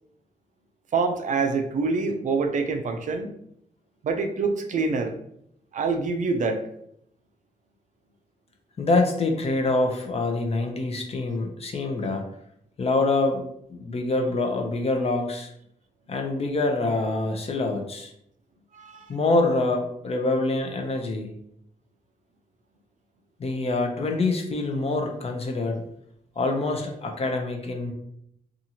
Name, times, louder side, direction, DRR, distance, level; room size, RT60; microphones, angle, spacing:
voice 1, 0.9-3.3 4.0-5.1 5.7-6.6 18.7-19.1, right 4 dB, 60° right, 6 dB, 0.4 m, -26 dB
voice 2, 8.8-12.3 12.8-13.4 13.7-15.5 16.1-18.1 19.1-21.3 23.4-25.8 26.4-27.9, left 2 dB, 45° left, 3 dB, 0.6 m, -25 dB
2.7 x 2.4 x 2.8 m, 0.73 s
cardioid pair, 95°, 15 cm